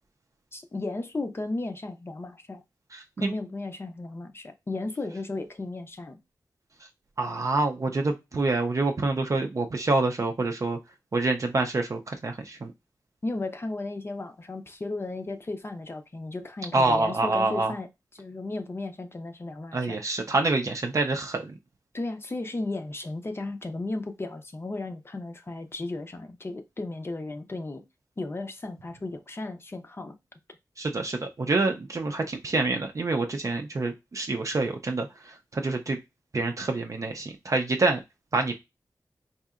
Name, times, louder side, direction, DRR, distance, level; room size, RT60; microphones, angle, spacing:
voice 1, 0.5-2.6 3.2-6.2 13.2-20.0 21.9-27.8 28.2-30.2, left 2 dB, 35° left, 0.5 m, -35 dB
voice 2, 7.2-10.8 11.1-12.7 16.7-17.7 19.7-21.5 30.8-35.1 35.5-36.0 36.3-38.0 38.3-38.5, right 3 dB, 45° right, 0.5 m, -26 dB
4.1 x 2.7 x 2.4 m
wide cardioid pair, 110°, 7 cm